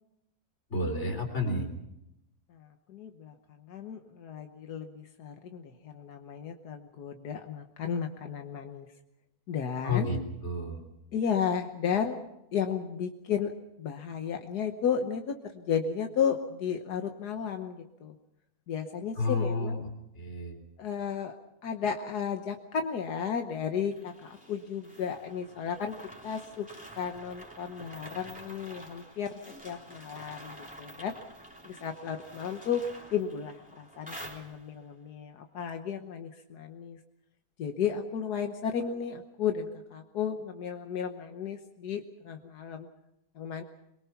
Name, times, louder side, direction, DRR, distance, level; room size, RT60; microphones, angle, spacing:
voice 1, 0.7-1.7 9.8-10.8 19.2-19.8 20.2-20.6, left 2 dB, 45° left, 4 dB, 4.0 m, -30 dB
voice 2, 2.5-8.9 9.5-10.1 11.1-12.2 12.5-13.5 13.8-18.1 18.7-19.8 20.8-21.4 21.6-26.0 26.2-26.7 27.0-29.3 29.6-31.1 31.6-32.8 33.1-37.0 37.6-42.9 43.3-43.6, left 7 dB, 85° left, 5 dB, 1.7 m, -33 dB
sound 1, 23.9-34.9, right 1 dB, 5° right, 3.3 m, -49 dB
23.0 x 22.5 x 5.8 m, 0.85 s
omnidirectional pair, 1.6 m